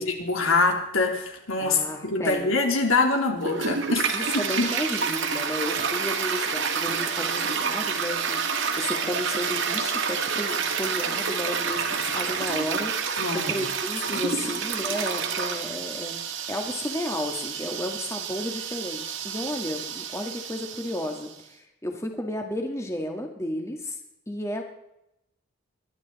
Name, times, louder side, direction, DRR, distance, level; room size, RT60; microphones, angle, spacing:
voice 1, 0.0-4.2 4.6-4.7 5.4-5.5 13.2-13.7 14.1-14.3, left 3 dB, 70° left, 3 dB, 3.3 m, -25 dB
voice 2, 1.6-2.5 4.1-12.9 13.3-16.1 16.5-24.0 24.3-24.6, left 1 dB, 15° left, 3 dB, 1.5 m, -33 dB
Toilet flush, 3.4-21.3, right 6 dB, 60° right, 2.0 m, -29 dB
21.5 x 12.5 x 4.1 m, 0.82 s
head